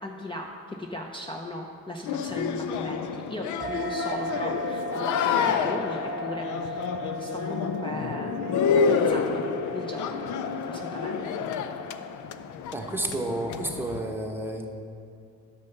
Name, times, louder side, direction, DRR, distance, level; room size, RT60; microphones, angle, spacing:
voice 1, 0.0-6.9 7.2-8.5 8.9-9.4 9.7-10.2 10.7-11.3, left 1 dB, 15° left, 1 dB, 0.7 m, -37 dB
sound 1, 2.1-14.0, left 6 dB, 75° left, 0.6 m, -29 dB
sound 2, 3.6-12.6, right 3 dB, 25° right, 0.8 m, -38 dB
voice 2, 12.7-14.7, right 1 dB, 5° right, 2 dB, 1.1 m, -31 dB
10.5 x 6.9 x 5.5 m, 2.5 s
cardioid pair, 90°, 30 cm